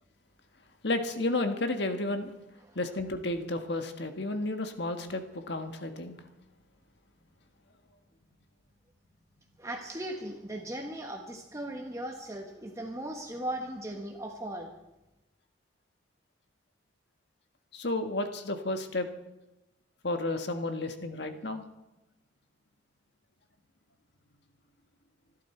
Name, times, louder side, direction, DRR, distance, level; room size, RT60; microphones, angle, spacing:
voice 1, 0.8-2.3 2.7-6.1 17.7-19.1 20.0-21.6, left 2 dB, 60° left, 6 dB, 1.5 m, -32 dB
voice 2, 9.6-14.7, right 1 dB, 15° right, 2 dB, 1.2 m, -38 dB
26.0 x 12.0 x 4.5 m, 0.98 s
head